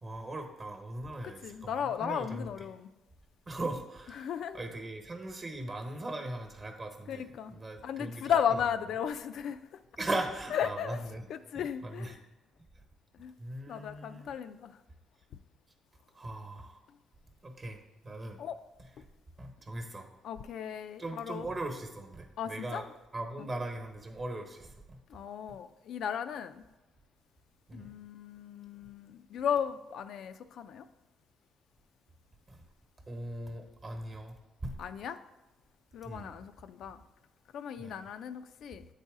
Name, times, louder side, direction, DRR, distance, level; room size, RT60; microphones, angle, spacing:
voice 1, 0.0-2.5 3.5-8.4 10.0-11.2 11.5-12.2 13.4-14.3 16.1-16.8 17.4-18.4 19.4-20.1 21.0-22.8 23.1-25.0 27.7-27.9 32.5-32.6 33.1-34.4 34.6-34.8 36.0-36.4 37.8-38.1, right 2 dB, 30° right, 4 dB, 1.1 m, -39 dB
voice 2, 1.2-2.9 4.2-4.6 7.1-7.5 7.8-9.8 10.5-11.0 11.3-12.1 13.1-13.3 13.7-14.8 18.4-18.6 19.0-19.1 20.2-21.5 22.4-22.9 23.4-23.5 25.1-26.6 27.7-30.9 34.8-35.2 35.9-37.0 37.5-38.9, left 8 dB, 70° left, 10 dB, 0.3 m, -35 dB
8.5 x 4.1 x 3.6 m, 1.0 s
cardioid pair, 110°, 0 cm